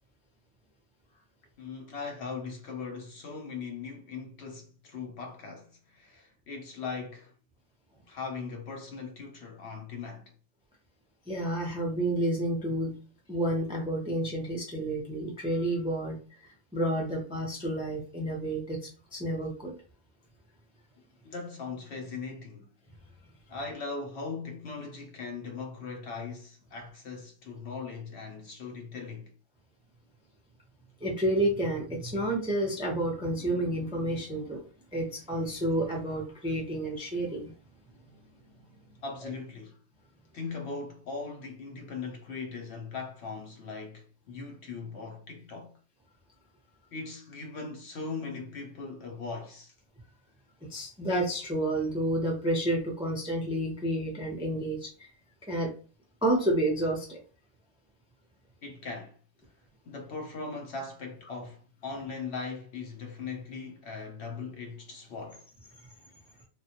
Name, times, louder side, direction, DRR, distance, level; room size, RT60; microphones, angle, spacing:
voice 1, 1.6-7.3 8.1-10.3 21.2-22.7 23.5-29.3 39.0-39.8 40.3-45.8 46.9-49.7 58.6-59.2 59.9-65.5, left 4 dB, 60° left, 0.8 m, -39 dB
voice 2, 11.3-13.0 13.3-19.8 31.0-34.6 34.9-37.5 50.6-55.1 55.5-55.7 56.2-57.2, right 1 dB, 5° right, 0.4 m, -30 dB
3.2 x 2.2 x 2.8 m
omnidirectional pair, 1.4 m